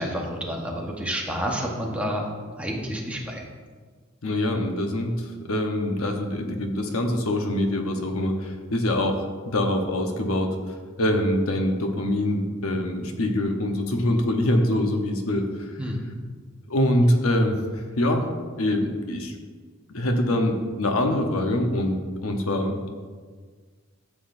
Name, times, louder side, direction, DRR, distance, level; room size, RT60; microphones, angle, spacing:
voice 1, 0.0-2.3 2.6-3.4 15.8-16.1, equal, 5° right, -1 dB, 1.2 m, -29 dB
voice 2, 4.2-10.6 11.0-15.7 16.7-18.2 18.6-19.3 19.9-22.8, left 1 dB, 75° left, 4 dB, 1.0 m, -24 dB
13.0 x 7.5 x 2.6 m, 1.5 s
head